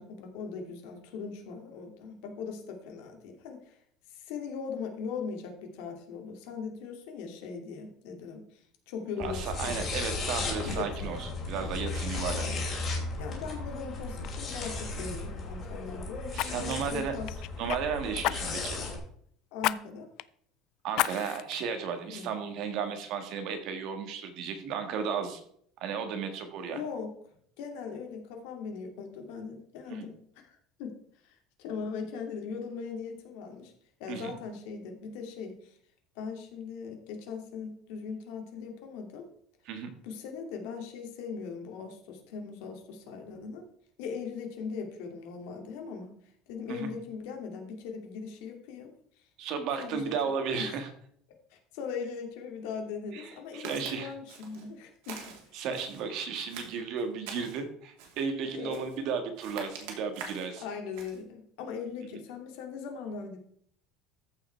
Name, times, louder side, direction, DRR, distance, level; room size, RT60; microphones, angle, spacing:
voice 1, 0.0-3.8 4.1-10.3 10.5-11.4 13.2-17.4 19.5-20.1 22.1-22.4 26.6-27.1 27.6-30.9 31.2-33.7 34.0-35.8 36.1-39.2 40.0-43.6 44.0-46.1 46.5-48.9 49.8-50.0 50.6-50.7 51.5-55.2 55.5-55.7 58.5-58.8 60.6-63.4, left 5 dB, 70° left, 3 dB, 2.4 m, -40 dB
sound 1, 9.2-19.0, left 3 dB, 25° left, 2.8 m, -35 dB
voice 2, 9.2-12.6 16.3-17.1 17.6-18.8 20.8-25.4 25.8-26.8 29.9-30.1 34.1-34.3 39.6-39.9 46.7-46.9 49.4-50.9 53.1-54.1 55.5-60.6, right 6 dB, 45° right, 6 dB, 1.7 m, -34 dB
Fire, 13.7-13.9 14.2-14.4 16.3-17.8 18.2-18.8 19.6-19.8 20.2-20.3 20.9-21.5 22.1-22.2, left 17 dB, 50° left, 0.3 m, -31 dB
Walk footsteps, 53.6-53.9 54.3-54.7 55.0-56.0 56.5-57.6 58.0-58.3 58.7-59.0 59.4-60.5 60.9-61.2, right 5 dB, 75° right, 2.7 m, -45 dB
14.0 x 5.6 x 4.5 m, 0.64 s
cardioid pair, 180°, 0 cm